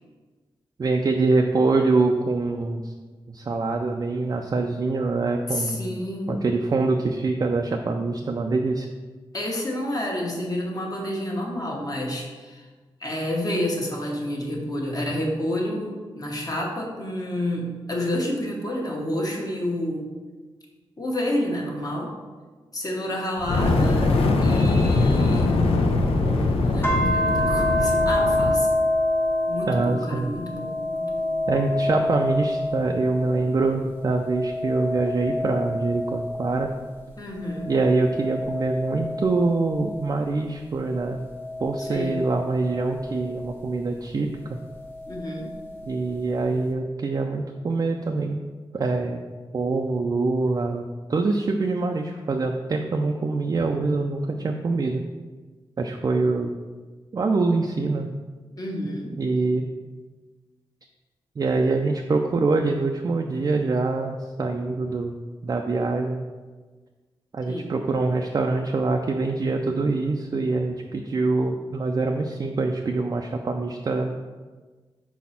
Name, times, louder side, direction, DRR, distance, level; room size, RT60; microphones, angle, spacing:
voice 1, 0.8-2.9 3.3-5.8 6.3-8.9 29.7-30.4 31.5-36.7 37.7-41.2 41.6-44.6 45.9-48.4 48.7-49.2 49.5-50.8 51.1-55.0 55.8-56.5 57.1-58.1 59.2-59.7 61.4-65.2 65.4-66.3 67.3-74.2, right 3 dB, 40° right, 3 dB, 0.4 m, -24 dB
voice 2, 5.5-6.4 9.3-12.7 13.0-20.0 21.0-22.1 22.7-25.5 26.6-28.7 29.5-31.4 37.2-37.7 41.8-42.3 45.1-45.5 58.6-59.2 67.5-67.7, left 1 dB, 40° left, -1 dB, 1.3 m, -29 dB
Fire, 23.4-28.7, left 3 dB, 85° left, 0.6 m, -22 dB
sound 1, 26.8-33.6 34.0-36.9 37.5-40.3 41.0-43.5 44.8-45.9, left 1 dB, 25° left, 0.9 m, -28 dB
4.2 x 4.2 x 5.7 m, 1.4 s
wide cardioid pair, 90°, 10 cm